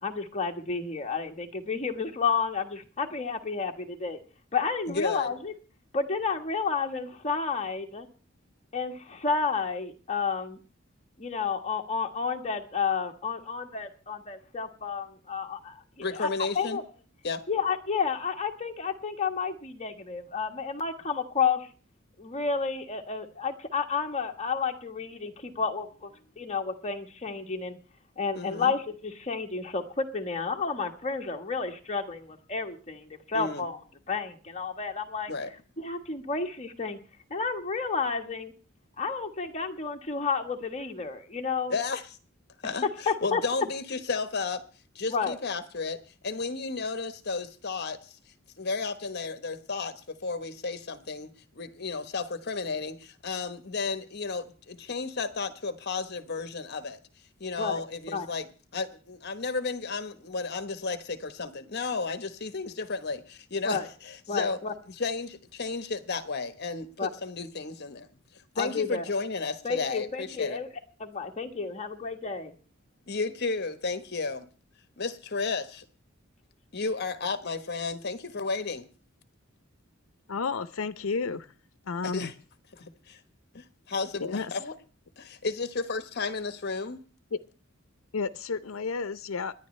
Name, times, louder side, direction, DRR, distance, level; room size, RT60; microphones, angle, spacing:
voice 1, 0.0-4.2 4.5-5.5 5.9-8.1 8.7-10.6 11.2-16.3 16.5-16.8 17.5-21.7 22.2-26.1 26.4-27.8 28.2-33.8 34.1-35.3 35.8-37.0 37.3-38.5 39.0-41.7 42.8-43.4 45.1-45.4 57.6-57.8 58.1-58.3 63.6-63.9 64.3-64.7 67.0-67.1 68.5-69.0 69.6-70.7 71.0-72.5, left 5 dB, 35° left, 1.3 m, -31 dB
voice 2, 4.9-5.3 16.0-16.8 17.2-17.4 28.4-28.7 33.3-33.6 35.3-35.5 41.7-42.0 42.6-42.9 43.2-44.6 44.9-48.2 48.6-57.0 57.4-58.5 58.7-64.6 64.9-68.1 68.5-70.6 73.1-74.5 75.0-75.8 76.7-78.9 82.0-82.3 82.7-83.2 83.5-84.7 85.2-87.0, left 4 dB, 55° left, 1.2 m, -33 dB
voice 3, 80.3-81.5 81.9-82.3 84.2-84.5 87.3-87.4 88.1-89.5, left 4 dB, 85° left, 0.6 m, -31 dB
27.5 x 10.5 x 3.2 m
head